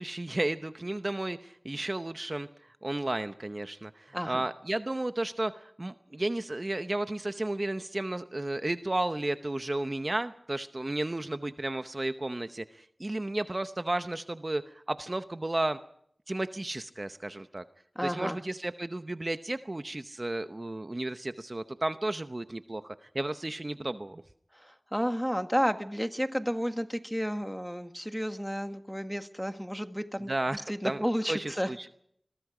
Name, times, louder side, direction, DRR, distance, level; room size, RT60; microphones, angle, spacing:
voice 1, 0.0-15.8 16.3-17.6 18.0-24.2 30.3-31.0 31.3-31.9, right 2 dB, 40° right, 10 dB, 0.8 m, -33 dB
voice 2, 4.1-4.5 17.9-18.4 24.5-31.9, equal, ahead, 8 dB, 1.6 m, -32 dB
26.0 x 22.5 x 5.0 m, 0.69 s
wide cardioid pair, 55°, 0 cm